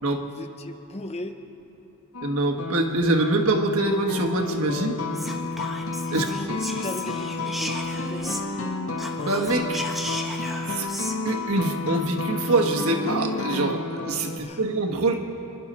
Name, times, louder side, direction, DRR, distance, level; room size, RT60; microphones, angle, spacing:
voice 1, 0.2-1.4 6.1-8.4 14.3-14.6, left 1 dB, 30° left, 6 dB, 0.8 m, -37 dB
sound 1, 2.1-14.4, left 3 dB, 70° left, 1.1 m, -31 dB
voice 2, 2.2-5.0 6.1-6.4 9.2-9.8 10.7-10.9 11.2-15.2, right 2 dB, 90° right, 2 dB, 1.4 m, -24 dB
Whispering, 5.1-8.7 8.9-11.2, equal, ahead, 1.1 m, -35 dB
26.5 x 11.0 x 4.3 m, 3.0 s
head